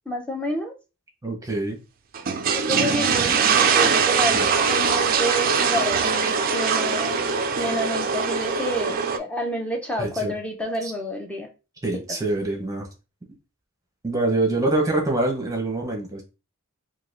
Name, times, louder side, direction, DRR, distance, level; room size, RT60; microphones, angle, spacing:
voice 1, 0.1-0.7 2.7-7.2 7.6-11.5 11.9-12.0, equal, 5° left, 2 dB, 0.6 m, -29 dB
voice 2, 1.2-1.8 4.3-4.5 10.0-10.3 10.8-10.9 11.8-12.9 14.0-16.2, right 2 dB, 15° right, 2 dB, 0.9 m, -25 dB
sound 1, 2.1-9.2, right 6 dB, 45° right, 0.4 m, -22 dB
3.8 x 2.6 x 2.5 m, 0.30 s
head